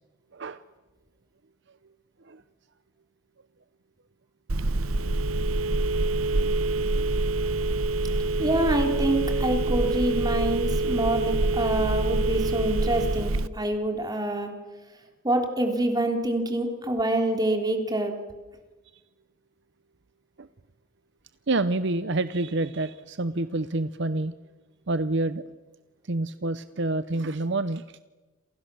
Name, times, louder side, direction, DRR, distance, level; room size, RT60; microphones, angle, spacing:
voice 1, 0.3-0.6 2.3-2.4 20.4-20.5 21.5-24.3 24.9-25.4 26.1-27.8, right 2 dB, 60° right, 13 dB, 0.8 m, -27 dB
Telephone, 4.5-13.5, right 2 dB, 85° right, 1.0 m, -25 dB
voice 2, 8.4-14.5 15.2-18.1, right 1 dB, 20° right, 4 dB, 3.6 m, -26 dB
28.5 x 28.0 x 7.1 m, 1.2 s
head